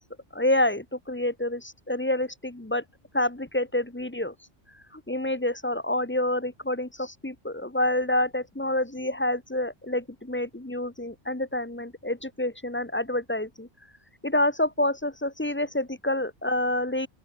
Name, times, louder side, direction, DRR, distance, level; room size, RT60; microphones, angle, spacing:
voice 1, 0.3-2.8 3.1-4.3 4.9-13.7 14.2-17.1, left 1 dB, 10° left, 1.1 m, -28 dB
open air
omnidirectional pair, 1.1 m